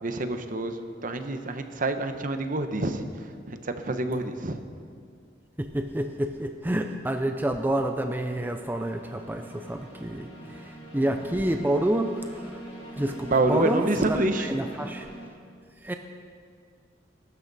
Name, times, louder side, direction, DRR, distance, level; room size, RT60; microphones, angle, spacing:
voice 1, 0.0-4.6 13.2-14.5, right 2 dB, 50° right, 8 dB, 0.9 m, -27 dB
sound 1, 1.2-1.5 7.4-15.3, right 1 dB, 35° left, 3.4 m, -43 dB
voice 2, 5.6-12.6 13.0-14.2 14.5-15.1 15.8-15.9, right 1 dB, 10° right, 5 dB, 0.5 m, -28 dB
20.5 x 12.5 x 4.1 m, 2.2 s
head